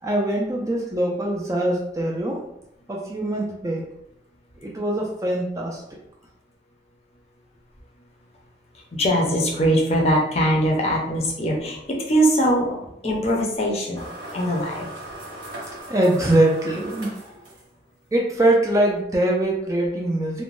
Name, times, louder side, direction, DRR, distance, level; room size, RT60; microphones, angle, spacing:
voice 1, 0.0-2.5 2.9-3.9 4.6-5.8 15.6-17.1 18.1-20.4, right 1 dB, 20° right, -1 dB, 0.3 m, -22 dB
voice 2, 8.7-12.8 13.0-14.9, equal, 35° left, -2 dB, 0.6 m, -22 dB
sound 1, 14.0-18.0, right 1 dB, 80° right, 0.9 m, -38 dB
2.5 x 2.1 x 3.1 m, 0.80 s
head